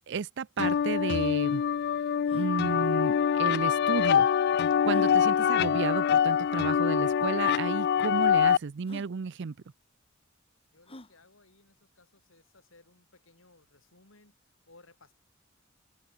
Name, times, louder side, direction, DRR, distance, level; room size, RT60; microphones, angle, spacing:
voice 1, 0.1-1.6 2.3-4.3 4.8-9.5, right 5 dB, 60° right, 0.5 m, -32 dB
sound 1, 0.6-8.6, left 8 dB, 55° left, 0.3 m, -25 dB
sound 2, 2.2-2.5 3.9-4.0 4.8-5.2 6.2-6.3 7.0-7.1 7.4-7.7 8.8-9.1 10.9-11.2, left 1 dB, 30° left, 3.8 m, -48 dB
voice 2, 10.7-14.4 14.7-15.1, left 2 dB, 75° left, 4.6 m, -60 dB
head